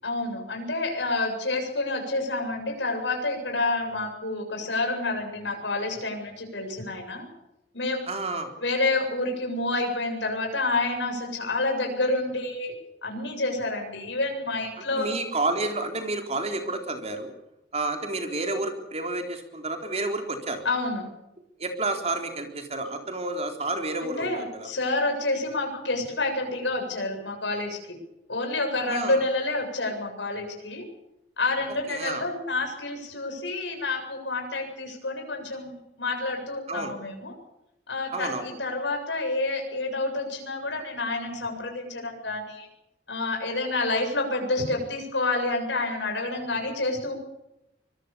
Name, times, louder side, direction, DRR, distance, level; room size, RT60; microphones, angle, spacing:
voice 1, 0.0-7.3 7.7-8.0 8.6-12.7 13.0-15.1 20.6-21.1 24.2-28.0 28.3-30.9 31.4-37.3 37.9-42.7 43.1-47.1, left 2 dB, 85° left, 3 dB, 7.6 m, -28 dB
voice 2, 8.1-8.5 14.9-17.3 17.7-20.6 21.6-24.7 28.9-29.2 31.9-32.2 36.7-36.9 38.1-38.5, right 2 dB, 35° right, 5 dB, 4.0 m, -30 dB
24.5 x 22.5 x 7.1 m, 0.85 s
head